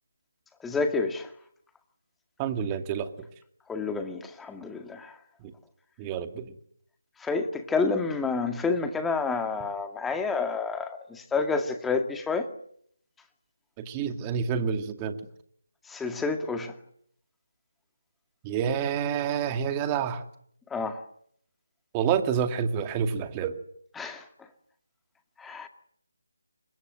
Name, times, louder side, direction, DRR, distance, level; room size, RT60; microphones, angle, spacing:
voice 1, 0.6-1.3 3.7-5.2 7.2-12.5 15.9-16.7 20.7-21.0 24.0-24.2 25.4-25.7, left 4 dB, 5° left, 2.0 m, -29 dB
voice 2, 2.4-3.1 6.0-6.5 13.8-15.2 18.4-20.2 21.9-23.6, right 7 dB, 15° right, 2.2 m, -28 dB
29.5 x 25.5 x 7.9 m
figure-of-eight pair, 155°, 0 cm